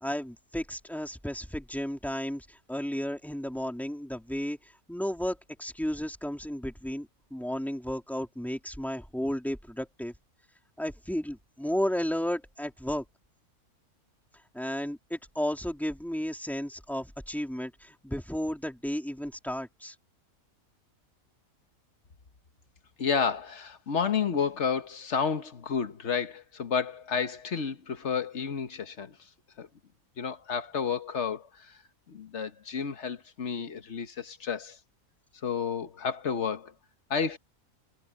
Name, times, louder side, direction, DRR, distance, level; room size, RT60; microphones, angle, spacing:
voice 1, 0.0-10.1 10.8-13.0 14.5-20.0, equal, ahead, 2.5 m, -33 dB
voice 2, 23.0-29.1 29.6-29.7 30.2-31.7 32.1-34.8 35.4-36.7 37.1-37.4, left 6 dB, 50° left, 1.4 m, -31 dB
omnidirectional pair, 1.6 m